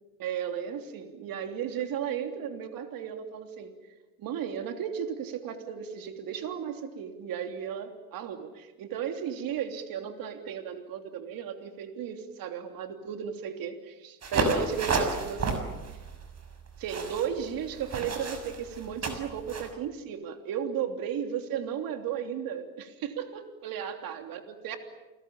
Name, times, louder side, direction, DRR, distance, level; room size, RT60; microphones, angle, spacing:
voice 1, 0.2-3.7 4.2-15.6 16.8-24.8, right 8 dB, 60° right, 5 dB, 3.3 m, -35 dB
sound 1, 14.2-19.7, right 3 dB, 40° right, 6.5 m, -32 dB
29.5 x 21.5 x 8.9 m, 1.1 s
hypercardioid pair, 80°, 39 cm